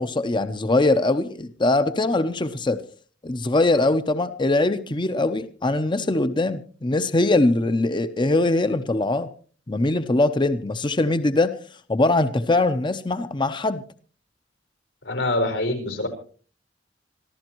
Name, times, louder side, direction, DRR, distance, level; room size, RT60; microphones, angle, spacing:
voice 1, 0.0-2.8 3.2-9.3 9.7-11.5 11.9-13.8, left 2 dB, 25° left, 11 dB, 0.7 m, -22 dB
voice 2, 15.0-16.1, left 1 dB, 90° left, 6 dB, 4.7 m, -24 dB
26.5 x 14.5 x 3.0 m, 0.40 s
head